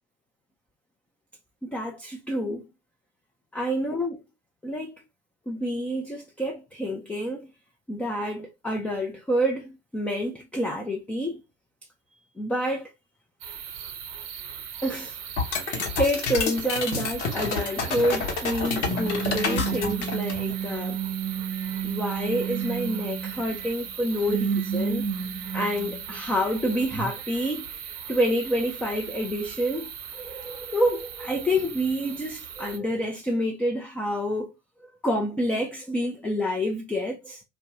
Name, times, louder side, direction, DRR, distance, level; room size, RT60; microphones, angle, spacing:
voice 1, 1.6-2.7 3.5-4.2 4.6-5.0 5.5-7.5 7.9-11.4 12.4-12.9 14.8-15.2 15.7-21.0 21.8-25.1 25.5-27.8 28.1-34.5 34.8-37.4, equal, 5° left, 0.3 m, -28 dB
sound 1, 13.4-32.8, right 8 dB, 45° right, 0.6 m, -39 dB
sound 2, 15.4-20.5, left 4 dB, 75° left, 1.0 m, -29 dB
sound 3, 17.9-18.2 18.8-23.9 24.3-26.6 26.9-27.1, right 7 dB, 15° right, 0.9 m, -31 dB
2.5 x 2.2 x 2.8 m
hypercardioid pair, 80°, 35 cm